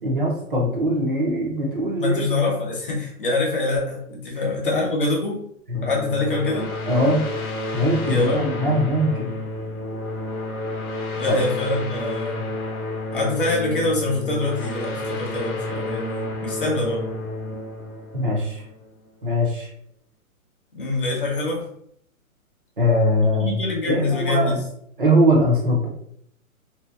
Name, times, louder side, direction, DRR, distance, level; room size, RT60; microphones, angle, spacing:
voice 1, 0.0-2.3 4.3-4.5 5.7-5.9 6.9-7.3 7.7-9.3 11.3-11.4 18.1-18.6 19.2-19.7 22.8-23.5 23.9-24.5 25.0-25.9, equal, 40° right, -2 dB, 0.5 m, -21 dB
voice 2, 2.0-5.4 5.8-6.7 8.1-8.5 11.1-12.4 13.1-17.0 20.7-21.7 23.4-24.6, left 2 dB, 40° left, -3 dB, 0.7 m, -24 dB
sound 1, 5.7-19.1, left 2 dB, 80° left, 0.7 m, -30 dB
2.7 x 2.1 x 2.3 m, 0.69 s
hypercardioid pair, 175°, 43 cm